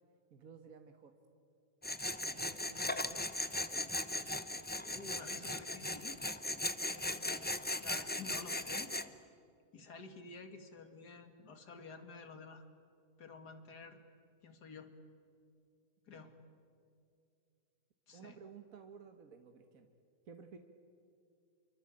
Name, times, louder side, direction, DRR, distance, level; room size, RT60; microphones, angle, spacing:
voice 1, 0.3-1.1 2.2-3.2 16.1-16.3 18.1-19.9 20.2-20.6, right 6 dB, 60° right, 6 dB, 1.7 m, -55 dB
Tools, 1.8-9.1, left 1 dB, 10° left, 0.5 m, -38 dB
voice 2, 4.9-6.2 6.8-7.4 7.8-8.9 9.7-12.6 13.2-14.0 14.4-14.9 16.1-16.3 18.1-18.4, left 4 dB, 80° left, 7 dB, 2.6 m, -51 dB
27.0 x 24.5 x 8.9 m, 2.4 s
omnidirectional pair, 1.7 m